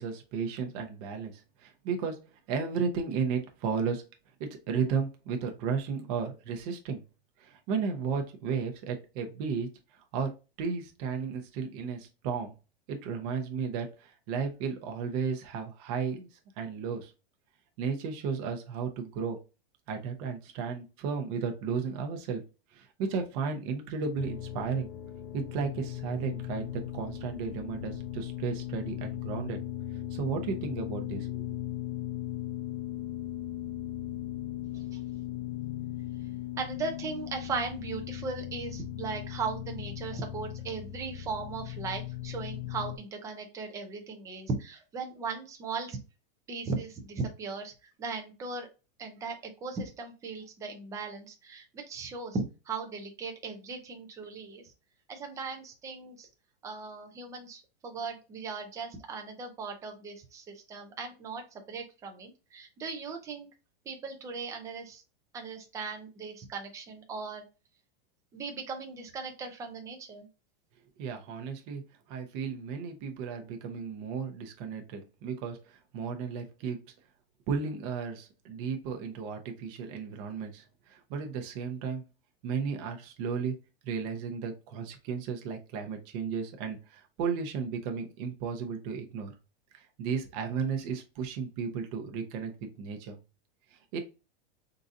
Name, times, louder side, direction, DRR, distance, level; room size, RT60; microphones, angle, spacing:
voice 1, 0.0-2.2 2.5-4.0 4.4-7.0 7.4-9.7 10.1-10.3 10.6-12.5 12.9-16.3 16.6-17.1 17.8-19.4 19.9-22.4 22.7-24.9 25.3-26.7 26.9-29.6 30.1-31.6 71.0-71.8 72.1-76.8 77.5-82.0 82.4-83.6 83.8-89.3 89.7-93.2 93.9-94.0, right 6 dB, 40° right, 4 dB, 0.8 m, -34 dB
sound 1, 24.2-43.0, left 13 dB, 50° left, 0.5 m, -38 dB
voice 2, 36.6-46.0 46.5-48.7 49.0-54.6 55.1-56.3 56.6-63.5 63.9-65.0 65.3-67.4 68.3-70.3, right 4 dB, 10° right, 3 dB, 0.4 m, -38 dB
3.8 x 2.6 x 2.5 m, 0.30 s
supercardioid pair, 155°, 29 cm